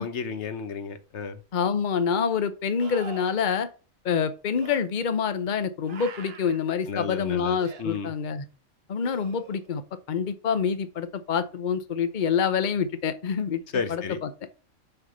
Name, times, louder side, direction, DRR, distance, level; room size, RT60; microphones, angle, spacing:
voice 1, 0.0-1.4 6.9-8.1 13.7-14.2, left 5 dB, 60° left, 1.2 m, -32 dB
sound 1, 1.2-1.3 2.8-3.5 4.5-4.8 5.9-6.6 7.6-7.8 9.0-9.7 12.9-13.0, right 5 dB, 50° right, 1.0 m, -44 dB
voice 2, 1.5-3.7 4.0-8.4 8.9-9.8 10.1-13.6 13.9-14.3, left 6 dB, 40° left, 0.8 m, -26 dB
5.7 x 5.7 x 6.6 m
omnidirectional pair, 1.4 m